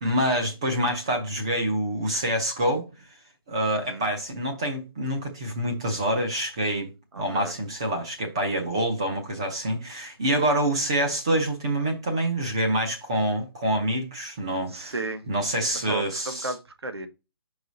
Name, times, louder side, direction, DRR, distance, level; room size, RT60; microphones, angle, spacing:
voice 1, 0.0-2.9 3.5-6.9 7.2-14.9 15.3-16.5, right 1 dB, 10° right, 0.6 m, -26 dB
voice 2, 3.7-4.1 7.1-7.5 14.7-15.4 15.7-17.1, right 3 dB, 90° right, 1.4 m, -34 dB
5.5 x 4.8 x 4.0 m
hypercardioid pair, 180°, 13 cm